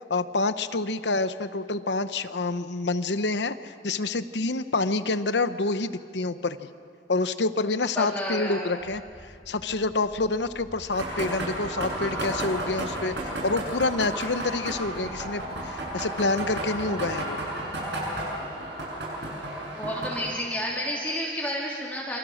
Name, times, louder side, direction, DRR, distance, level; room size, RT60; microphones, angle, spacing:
voice 1, 0.0-6.7 7.1-17.4, left 3 dB, 85° left, 11 dB, 0.9 m, -27 dB
voice 2, 7.9-8.7 19.8-22.2, equal, 10° left, -5 dB, 3.2 m, -30 dB
sound 1, 8.8-16.2, equal, 50° right, 5.3 m, -50 dB
sound 2, 10.9-20.3, right 1 dB, 85° right, 7.9 m, -33 dB
27.0 x 25.0 x 6.5 m, 2.3 s
head